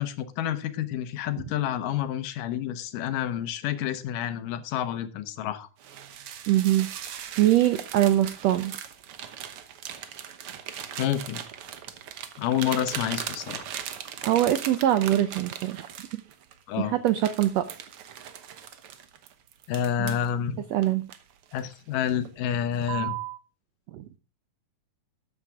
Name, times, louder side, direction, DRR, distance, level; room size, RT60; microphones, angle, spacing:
voice 1, 0.0-5.7 11.0-11.4 12.4-13.7 16.7-16.9 19.7-20.6 21.5-23.2, left 10 dB, 80° left, 11 dB, 2.6 m, -29 dB
sound 1, 5.8-16.6 17.1-20.3 20.8-21.7 22.1-22.4 22.8-23.4, right 10 dB, 65° right, 1.4 m, -39 dB
voice 2, 6.5-6.9 7.1-8.7 14.2-15.9 16.8-17.6 20.0-20.1 20.7-21.0 23.9-24.0, right 13 dB, 80° right, 11 dB, 1.5 m, -23 dB
13.0 x 9.4 x 3.5 m, 0.31 s
omnidirectional pair, 3.8 m